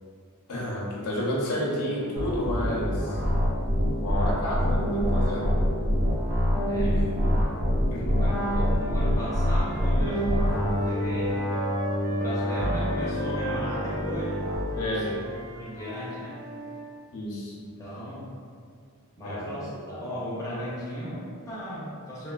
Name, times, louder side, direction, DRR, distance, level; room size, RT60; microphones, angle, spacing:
voice 1, 0.5-3.2 4.0-5.5 6.8-7.2 7.9-8.3 14.8-15.1 17.1-17.6 19.2-19.5, left 1 dB, 85° left, -4 dB, 0.6 m, -30 dB
sound 1, 2.2-14.5, equal, 80° right, 1.0 m, -26 dB
voice 2, 6.7-7.1 8.2-10.3 10.8-11.5 12.1-14.5 14.8-16.4 17.6-18.3 19.2-22.3, equal, 15° left, -9 dB, 0.6 m, -36 dB
Wind instrument woodwind instrument, 8.4-12.3 12.6-16.9, equal, 60° right, 0.4 m, -37 dB
3.2 x 2.1 x 2.3 m, 2.2 s
head